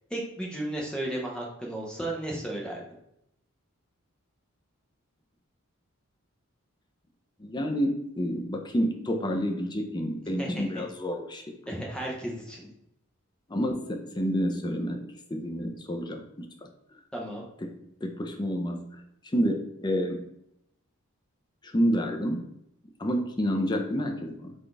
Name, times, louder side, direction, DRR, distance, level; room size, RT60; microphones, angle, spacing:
voice 1, 0.1-2.8 10.4-10.8 11.7-12.6 17.1-17.4, right 1 dB, 5° left, -2 dB, 0.9 m, -34 dB
voice 2, 7.4-11.6 13.5-16.7 17.6-17.7 18.0-20.3 21.6-22.4 23.0-24.5, equal, 20° left, 4 dB, 0.5 m, -29 dB
3.9 x 3.8 x 3.4 m, 0.79 s
head